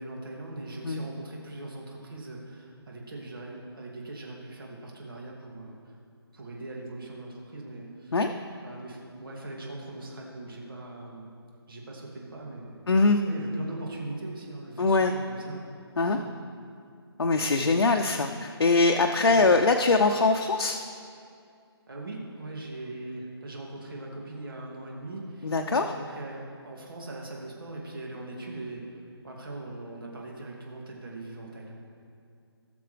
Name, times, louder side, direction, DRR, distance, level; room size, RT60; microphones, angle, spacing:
voice 1, 0.0-5.8 6.3-8.2 8.6-11.3 11.7-12.9 13.3-15.7 16.1-16.3 17.4-17.8 19.3-19.4 21.9-31.7, right 2 dB, 55° right, -2 dB, 2.4 m, -40 dB
voice 2, 12.9-13.2 14.8-15.1 16.0-16.2 17.2-20.8 25.4-25.9, left 3 dB, 90° left, 3 dB, 0.7 m, -22 dB
18.5 x 6.8 x 3.4 m, 2.3 s
hypercardioid pair, 175°, 14 cm